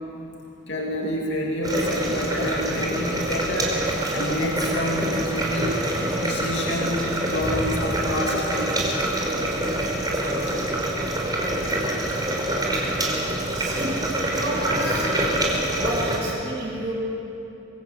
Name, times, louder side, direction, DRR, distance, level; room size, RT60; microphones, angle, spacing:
voice 1, 0.7-3.7 4.1-5.7 6.2-8.6 10.4-10.5, left 1 dB, 60° left, -1 dB, 2.8 m, -28 dB
sound 1, 1.6-16.2, right 1 dB, 20° right, 4.9 m, -25 dB
voice 2, 9.7-10.1 13.5-15.1 15.7-16.9, right 1 dB, 55° right, -5 dB, 7.3 m, -31 dB
26.0 x 23.0 x 8.3 m, 2.7 s
head